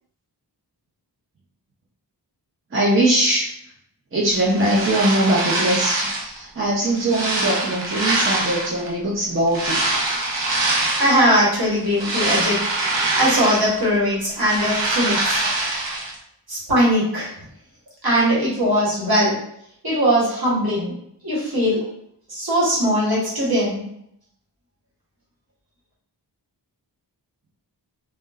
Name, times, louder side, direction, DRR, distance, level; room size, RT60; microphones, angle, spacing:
voice 1, 2.7-3.5 4.1-10.0, right 1 dB, 30° right, -5 dB, 0.6 m, -21 dB
sound 1, 4.3-6.4 6.8-8.9 9.5-11.3 11.7-13.9 14.2-16.1, right 2 dB, 85° right, 0.7 m, -24 dB
voice 2, 10.9-12.6 13.1-15.5 16.5-17.3 18.0-19.4 19.8-20.9 21.2-21.8 22.3-23.9, equal, 55° right, -6 dB, 1.2 m, -20 dB
2.9 x 2.2 x 2.3 m, 0.72 s
wide cardioid pair, 70°, 43 cm